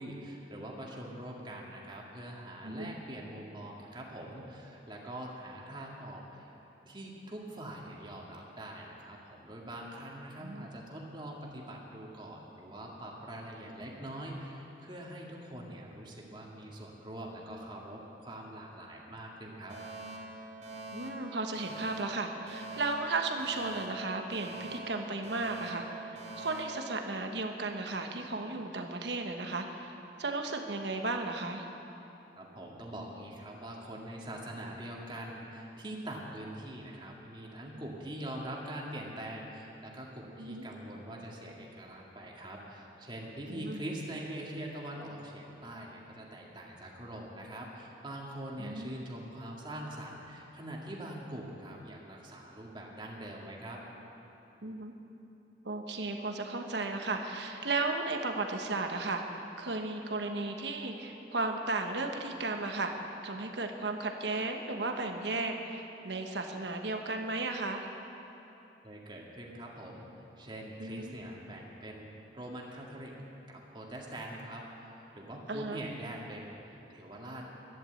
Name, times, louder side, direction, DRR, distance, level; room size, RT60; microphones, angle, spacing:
voice 1, 0.0-19.8 32.4-53.8 68.8-73.2 73.5-77.5, right 1 dB, 25° right, -2 dB, 2.0 m, -43 dB
voice 2, 2.6-2.9 10.4-10.7 20.9-29.9 30.2-31.6 40.4-40.7 43.5-43.8 48.6-49.0 54.6-54.9 55.6-62.9 63.2-67.9 70.8-71.1 75.5-75.8, right 3 dB, 75° right, 4 dB, 1.2 m, -35 dB
Alarm, 19.7-27.7, right 2 dB, 50° right, 3.1 m, -44 dB
12.5 x 10.5 x 7.8 m, 3.0 s
head